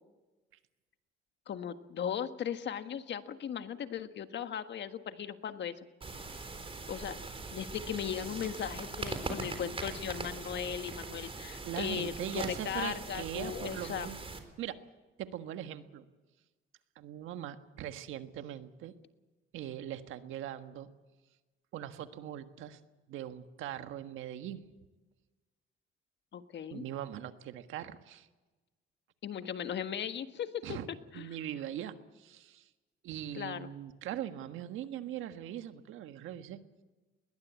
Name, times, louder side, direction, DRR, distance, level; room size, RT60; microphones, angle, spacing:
voice 1, 1.5-5.7 6.9-7.2 7.5-14.1 26.3-26.8 29.2-30.8 31.1-31.3 33.3-33.7, left 8 dB, 60° left, 9 dB, 1.6 m, -37 dB
sound 1, 6.0-14.4, right 3 dB, 30° right, 4.1 m, -41 dB
voice 2, 11.6-14.2 14.6-14.8 15.2-16.1 16.9-18.9 19.5-20.9 21.7-22.8 23.1-24.6 26.7-28.3 30.6-30.9 31.1-32.6 33.0-36.6, right 11 dB, 90° right, 9 dB, 1.5 m, -41 dB
21.0 x 20.0 x 8.4 m, 1.2 s
cardioid pair, 90°, 20 cm